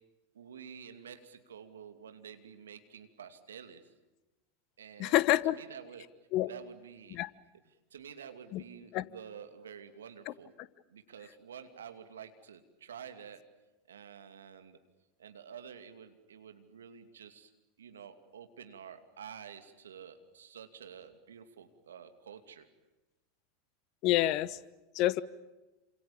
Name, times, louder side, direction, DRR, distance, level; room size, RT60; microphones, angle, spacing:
voice 1, 0.3-3.9 4.8-6.1 6.5-7.2 7.9-10.5 10.9-13.4 13.9-14.8 15.2-17.5 17.8-22.7, right 7 dB, 80° right, 2.6 m, -49 dB
voice 2, 5.0-5.6 6.3-6.5 7.1-7.3 8.5-8.6 8.9-9.0 10.3-10.4 24.0-24.6 24.9-25.2, left 15 dB, 50° left, 1.2 m, -27 dB
28.0 x 26.5 x 7.3 m
hypercardioid pair, 85°, 0 cm